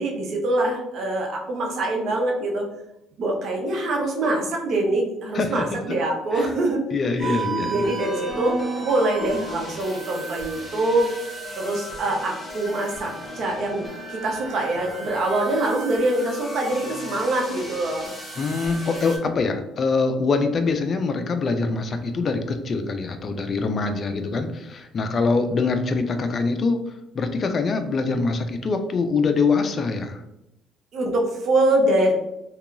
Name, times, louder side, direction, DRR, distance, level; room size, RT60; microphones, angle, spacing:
voice 1, 0.0-2.7 3.2-6.8 7.2-11.1 11.6-18.1 30.9-32.1, right 2 dB, 55° right, 1 dB, 0.7 m, -24 dB
voice 2, 5.3-5.8 6.3-6.5 6.9-7.9 18.4-26.8 27.1-30.2, left 4 dB, 40° left, 7 dB, 0.3 m, -24 dB
sound 1, 7.2-19.2, right 2 dB, ahead, 0.8 m, -34 dB
2.9 x 2.2 x 2.5 m, 0.87 s
cardioid pair, 100°, 0 cm